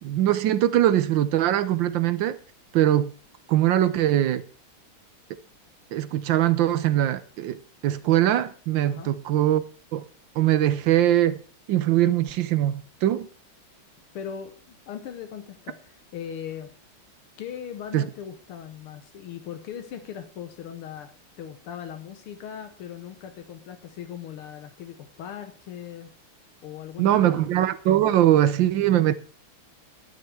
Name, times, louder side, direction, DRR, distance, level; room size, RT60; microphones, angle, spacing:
voice 1, 0.0-2.4 2.7-3.1 3.5-4.4 5.9-9.6 9.9-10.0 10.4-11.4 11.7-13.3 17.9-18.0 27.0-29.1, right 12 dB, 70° right, 1.3 m, -21 dB
voice 2, 14.1-16.7 17.4-21.1 21.4-26.1 26.6-27.5, left 9 dB, 85° left, 1.9 m, -39 dB
11.5 x 9.1 x 4.7 m
omnidirectional pair, 2.4 m